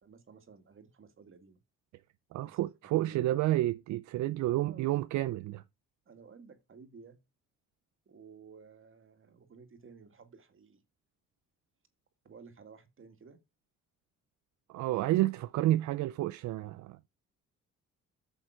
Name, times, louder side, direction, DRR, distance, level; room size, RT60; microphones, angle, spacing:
voice 1, 0.0-1.6 2.4-3.3 4.5-5.0 6.1-7.2 8.1-10.8 12.2-13.4 15.3-15.4, right 5 dB, 45° right, 2.0 m, -54 dB
voice 2, 2.3-5.6 14.7-17.1, right 15 dB, 75° right, 0.5 m, -30 dB
8.9 x 6.7 x 4.7 m
cardioid pair, 90°, 30 cm